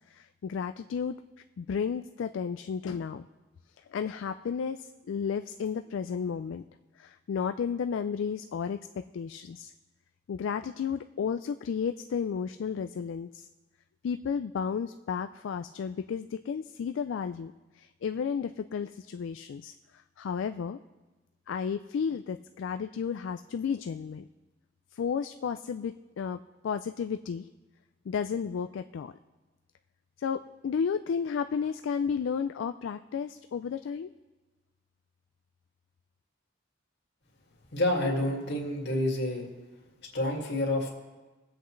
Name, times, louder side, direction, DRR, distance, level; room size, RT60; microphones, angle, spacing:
voice 1, 0.1-1.1 1.6-3.3 3.9-6.6 7.0-8.8 9.1-9.7 10.3-13.5 14.0-20.8 21.5-24.3 24.9-27.5 28.1-29.1 30.2-34.1, left 6 dB, 80° left, 9 dB, 0.3 m, -33 dB
voice 2, 37.7-39.5 40.1-40.9, left 1 dB, 60° left, -1 dB, 2.2 m, -28 dB
21.5 x 7.9 x 3.2 m, 1.2 s
head